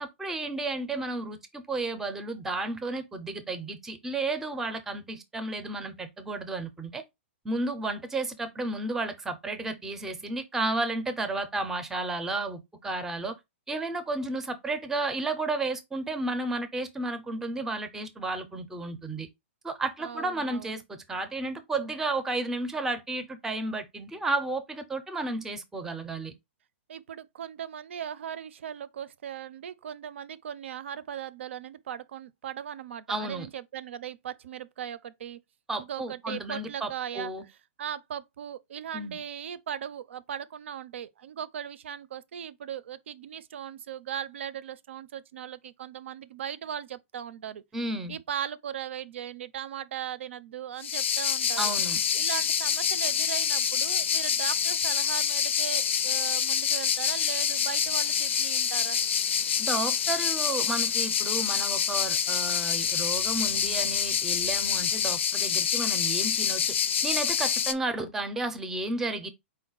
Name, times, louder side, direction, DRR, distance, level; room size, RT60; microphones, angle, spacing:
voice 1, 0.0-7.0 7.4-13.4 13.7-19.3 19.6-26.3 33.1-33.5 35.7-37.4 38.9-39.2 47.7-48.2 51.6-52.0 59.6-66.8 67.0-69.3, right 2 dB, 5° right, 0.4 m, -32 dB
voice 2, 20.0-20.8 26.9-35.4 35.8-37.3 37.8-47.6 48.1-51.7 52.1-59.0, right 9 dB, 75° right, 0.5 m, -38 dB
sound 1, 50.8-67.7, left 8 dB, 80° left, 0.5 m, -27 dB
4.5 x 2.1 x 3.9 m
hypercardioid pair, 160°, 7 cm